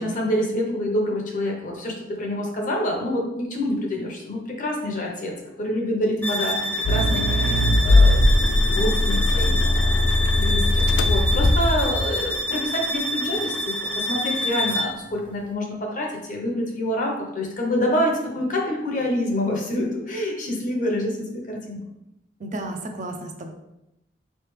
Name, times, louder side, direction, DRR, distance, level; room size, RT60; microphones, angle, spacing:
voice 1, 0.0-6.6 6.9-21.8, left 1 dB, 45° left, 0 dB, 0.9 m, -27 dB
sound 1, 6.2-15.0, left 1 dB, 10° left, 0.5 m, -27 dB
voice 2, 6.2-6.7 22.4-23.5, right 1 dB, 45° right, 4 dB, 0.5 m, -32 dB
Accelerating revving vroom, 6.9-12.3, left 1 dB, 75° left, 0.4 m, -19 dB
3.8 x 3.3 x 3.2 m, 0.88 s
head